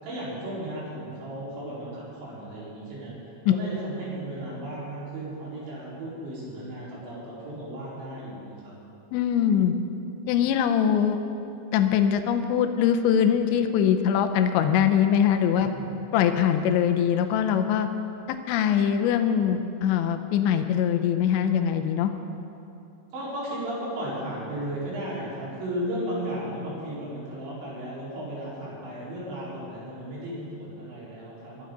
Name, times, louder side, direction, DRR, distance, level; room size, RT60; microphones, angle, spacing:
voice 1, 0.0-3.1 3.5-8.7 23.1-31.6, right 1 dB, 85° right, -8 dB, 6.8 m, -35 dB
voice 2, 9.1-9.7 10.3-11.2 11.7-15.7 16.1-17.9 18.3-22.1, left 9 dB, 90° left, 7 dB, 3.0 m, -22 dB
23.0 x 13.5 x 4.0 m, 2.7 s
omnidirectional pair, 5.1 m